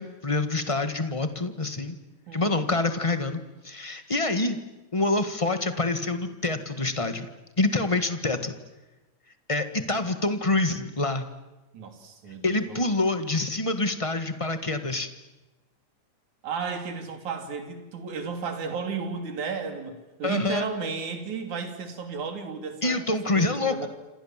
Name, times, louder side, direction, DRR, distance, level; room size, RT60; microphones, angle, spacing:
voice 1, 0.0-2.0 2.3-3.4 3.6-4.6 4.9-7.3 7.6-8.6 9.5-11.3 12.4-15.1 20.2-20.7 22.8-23.9, left 2 dB, 20° left, 9 dB, 0.9 m, -26 dB
voice 2, 2.3-2.6 11.7-12.8 16.4-23.9, right 5 dB, 70° right, 5 dB, 4.4 m, -34 dB
28.0 x 27.0 x 7.5 m, 1.1 s
omnidirectional pair, 3.5 m